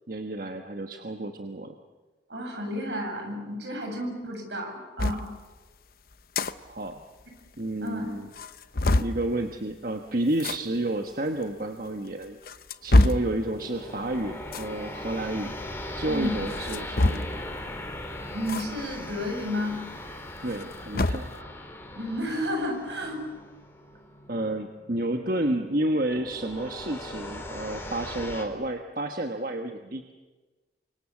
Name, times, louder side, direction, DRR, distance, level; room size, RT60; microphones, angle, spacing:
voice 1, 0.1-1.7 6.6-7.0 7.6-8.3 9.0-12.4 12.8-15.6 16.0-17.4 20.4-21.3 24.3-30.0, right 1 dB, 50° right, 4 dB, 1.3 m, -30 dB
voice 2, 2.3-5.2 7.8-8.1 16.1-16.4 18.3-19.8 21.3-21.5 21.9-23.2, left 1 dB, 75° right, 2 dB, 7.9 m, -32 dB
sound 1, 5.0-5.2 6.1-6.5 6.9-7.0 7.2-7.3 7.9-8.0 8.3-9.2 10.3-10.6 11.4-11.5 12.2-13.3 14.5-14.7 16.5-17.5 18.5-18.7 19.0-19.1 20.4-21.3, left 2 dB, 55° left, 0.9 m, -24 dB
sound 2, 13.2-28.4, left 1 dB, 15° left, 3.3 m, -39 dB
29.5 x 25.5 x 7.3 m, 1.3 s
head